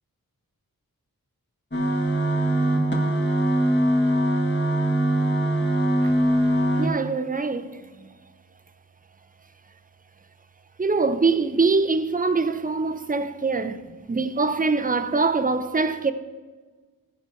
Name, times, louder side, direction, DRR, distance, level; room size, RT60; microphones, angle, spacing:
sound 1, 1.7-6.9, right 1 dB, 30° left, 1.7 m, -22 dB
voice 1, 6.8-8.1 10.8-13.8 14.1-16.1, right 4 dB, 25° right, 0.6 m, -23 dB
14.5 x 5.0 x 4.5 m
wide cardioid pair, 40°, 37 cm